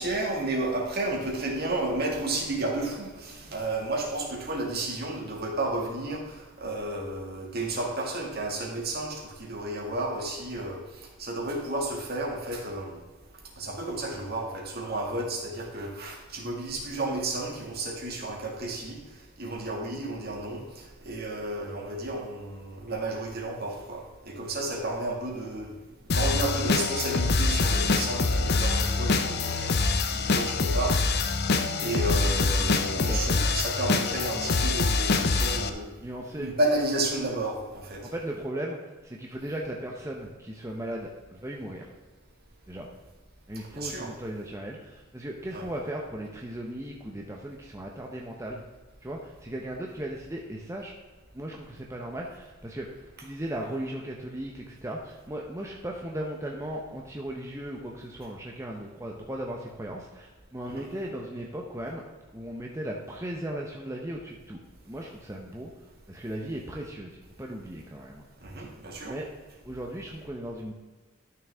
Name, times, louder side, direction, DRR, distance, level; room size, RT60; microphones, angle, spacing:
voice 1, 0.0-13.0 13.6-19.0 19.4-25.8 26.1-31.4 31.8-35.9 36.3-38.1 43.7-44.1 45.5-45.6 60.7-60.9 68.4-69.2, right 2 dB, 50° right, 0 dB, 2.0 m, -32 dB
sound 1, 26.1-35.7, left 3 dB, 50° left, 0.7 m, -25 dB
voice 2, 33.0-33.3 34.3-34.5 36.0-36.5 38.0-41.9 42.7-42.9 43.5-48.6 49.0-50.9 51.3-52.9 53.2-62.0 62.3-64.6 64.8-65.7 66.1-68.2 68.6-68.7 69.0-69.3 69.6-70.7, right 1 dB, 15° right, -1 dB, 0.8 m, -37 dB
12.5 x 6.5 x 3.5 m, 1.3 s
head